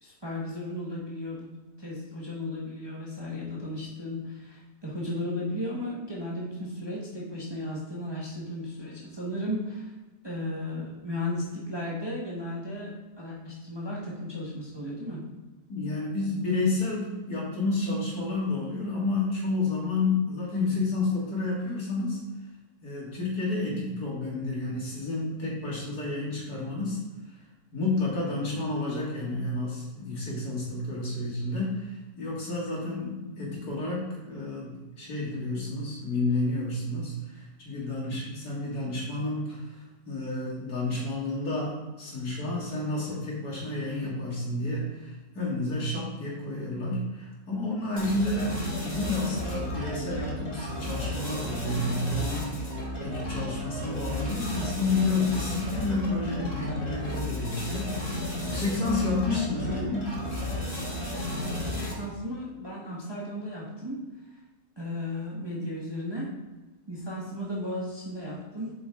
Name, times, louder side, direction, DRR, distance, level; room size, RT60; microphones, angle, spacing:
voice 1, 0.0-9.9 10.2-15.2 61.3-64.4 64.8-66.3 66.9-68.7, left 1 dB, 15° right, -5 dB, 1.2 m, -35 dB
voice 2, 15.7-22.2 22.8-27.0 27.3-27.4 27.7-58.0 58.4-60.2, left 2 dB, 70° left, -5 dB, 2.7 m, -30 dB
sound 1, 48.0-62.2, left 1 dB, 25° left, 1.6 m, -33 dB
7.7 x 5.2 x 3.7 m, 1.1 s
omnidirectional pair, 1.7 m